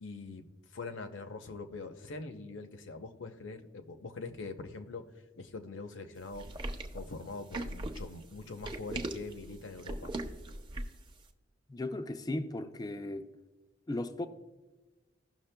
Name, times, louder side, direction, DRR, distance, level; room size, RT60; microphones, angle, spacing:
voice 1, 0.0-5.0 5.4-6.5 6.9-10.1, left 3 dB, 70° left, 0.7 m, -43 dB
sound 1, 6.3-11.1, right 2 dB, 25° right, 0.6 m, -39 dB
voice 2, 11.7-13.3 13.9-14.3, left 2 dB, 20° left, 0.4 m, -36 dB
16.5 x 6.1 x 2.2 m
head